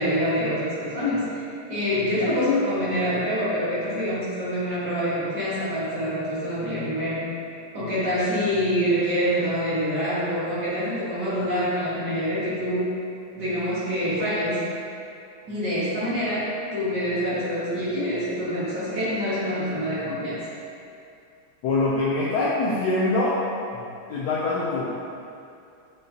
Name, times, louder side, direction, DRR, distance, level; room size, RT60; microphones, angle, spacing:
voice 1, 0.0-7.3 7.7-12.9 13.3-14.6 15.4-20.4, equal, 55° right, -11 dB, 2.3 m, -26 dB
voice 2, 21.6-23.4 23.7-24.9, left 2 dB, 65° left, -7 dB, 1.1 m, -24 dB
6.6 x 5.9 x 2.9 m, 2.6 s
omnidirectional pair, 2.3 m